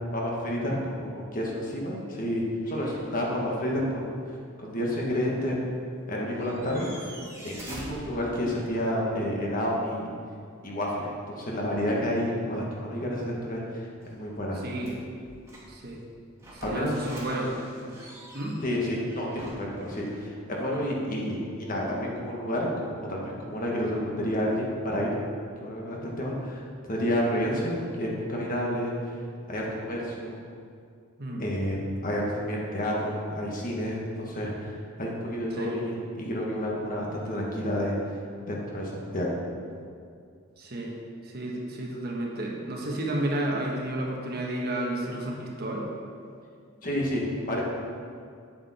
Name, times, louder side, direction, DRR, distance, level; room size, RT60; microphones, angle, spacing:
voice 1, 0.1-4.1 4.6-5.8 6.1-7.1 7.4-10.1 10.6-14.6 16.6-16.9 18.6-25.1 25.6-29.1 29.5-30.4 31.4-31.8 32.0-38.0 38.4-39.3 46.8-47.6, equal, 40° left, -3 dB, 1.6 m, -30 dB
sound 1, 2.6-3.4 3.8-3.9 6.0-6.1 6.2-8.8 14.0-15.9 16.4-20.1, right 1 dB, 15° right, 1.7 m, -46 dB
voice 2, 15.7-16.0 16.5-17.9 18.3-18.5 31.2-31.4 35.5-35.7 40.6-40.9 41.2-45.9, right 1 dB, 50° right, -1 dB, 1.3 m, -32 dB
8.6 x 8.4 x 4.3 m, 2.3 s
head